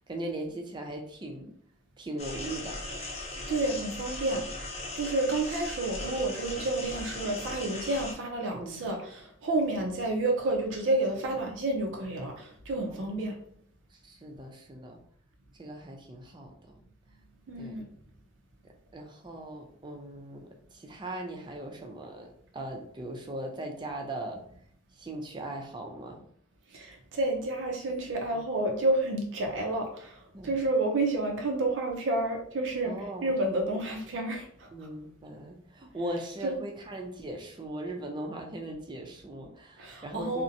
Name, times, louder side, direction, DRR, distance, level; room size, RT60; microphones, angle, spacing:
voice 1, 0.1-1.5 2.0-2.8 8.6-8.9 12.9-13.2 13.9-15.0 15.6-16.5 17.6-17.9 18.9-22.3 22.5-24.4 25.0-26.2 28.3-28.4 30.3-30.6 32.8-33.4 34.7-40.4, right 1 dB, 25° right, 2 dB, 0.4 m, -39 dB
sound 1, 2.2-8.1, left 2 dB, 35° left, 0.5 m, -38 dB
voice 2, 3.5-4.4 4.9-13.4 17.5-17.8 26.7-32.9 33.2-34.5 36.4-36.5 39.8-40.4, right 2 dB, 85° right, 2 dB, 0.5 m, -30 dB
2.5 x 2.0 x 2.6 m, 0.62 s
head